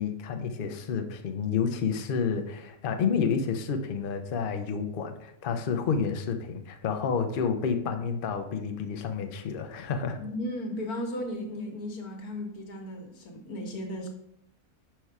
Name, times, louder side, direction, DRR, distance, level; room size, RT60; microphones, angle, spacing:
voice 1, 0.0-10.2, left 6 dB, 60° left, 6 dB, 0.5 m, -30 dB
voice 2, 10.2-14.1, left 1 dB, 75° left, 2 dB, 1.6 m, -35 dB
5.5 x 4.5 x 4.7 m, 0.77 s
omnidirectional pair, 1.6 m